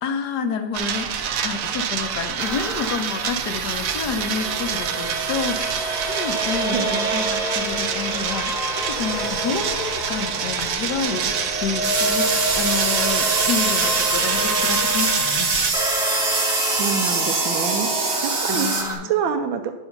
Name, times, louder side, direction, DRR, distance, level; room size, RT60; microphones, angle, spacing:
voice 1, 0.0-12.3 12.6-15.5 18.5-19.1, left 5 dB, 65° left, 7 dB, 1.3 m, -29 dB
sound 1, 0.7-15.7, right 8 dB, 65° right, 0.8 m, -27 dB
sound 2, 2.4-18.9, right 1 dB, ahead, 1.1 m, -28 dB
sound 3, 11.8-18.8, right 3 dB, 35° right, 1.6 m, -24 dB
voice 2, 16.8-17.9 18.2-18.7 19.0-19.7, right 7 dB, 85° right, 7 dB, 1.4 m, -26 dB
9.8 x 5.5 x 5.8 m, 1.1 s
omnidirectional pair, 2.1 m